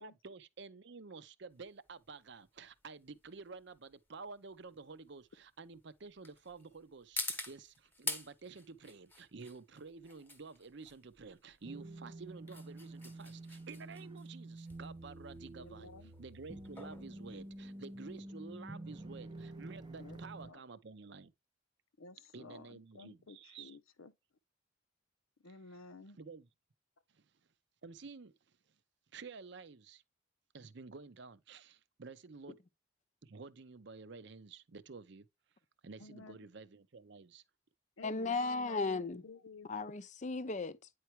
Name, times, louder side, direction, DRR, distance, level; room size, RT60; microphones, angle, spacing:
voice 1, 0.0-15.9 16.2-21.3 22.3-23.8 26.2-26.5 27.1-27.3 27.8-28.6 29.1-30.0 30.5-32.6 33.2-35.3 35.8-37.4, right 4 dB, 55° right, 0.6 m, -51 dB
sound 1, 1.5-18.2, left 2 dB, 10° left, 1.1 m, -47 dB
sound 2, 11.6-20.5, right 2 dB, 20° right, 0.8 m, -49 dB
voice 2, 15.6-16.1 20.0-20.6 22.0-24.1 25.4-26.2 36.0-36.4 38.0-39.7, left 3 dB, 80° left, 0.8 m, -53 dB
voice 3, 38.0-39.2 39.6-40.9, left 3 dB, 35° left, 0.5 m, -36 dB
9.4 x 4.5 x 3.1 m
head